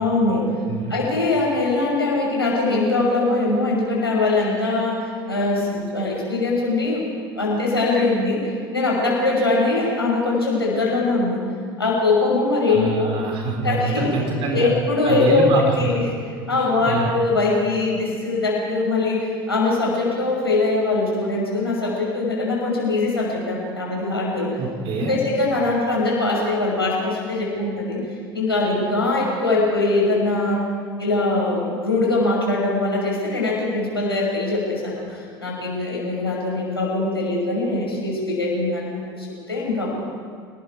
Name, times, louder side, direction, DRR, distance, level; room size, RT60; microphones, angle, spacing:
voice 1, 0.0-0.5 0.9-7.1 7.4-11.4 11.8-13.2 13.6-14.1 14.5-16.1 16.5-24.5 24.9-28.0 28.3-30.7 31.0-39.9, left 2 dB, 85° left, -3 dB, 6.2 m, -22 dB
voice 2, 12.7-14.7 15.0-15.9 16.8-17.2 24.6-25.2, right 3 dB, 45° right, 1 dB, 4.4 m, -25 dB
29.0 x 19.0 x 4.8 m, 2.1 s
figure-of-eight pair, 75°, 12 cm